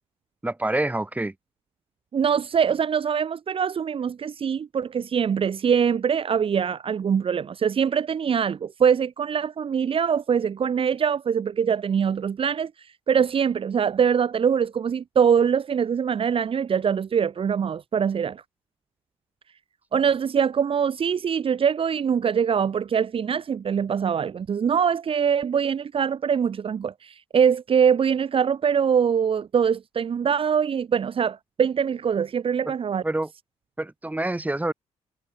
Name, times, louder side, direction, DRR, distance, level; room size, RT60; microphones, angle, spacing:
voice 1, 0.4-1.3 32.6-32.7 33.0-33.3 33.8-34.7, right 2 dB, 15° right, 5.3 m, -27 dB
voice 2, 2.1-12.7 13.1-18.4 19.9-33.0, right 7 dB, 50° right, 1.6 m, -23 dB
cardioid pair, 75°, 12 cm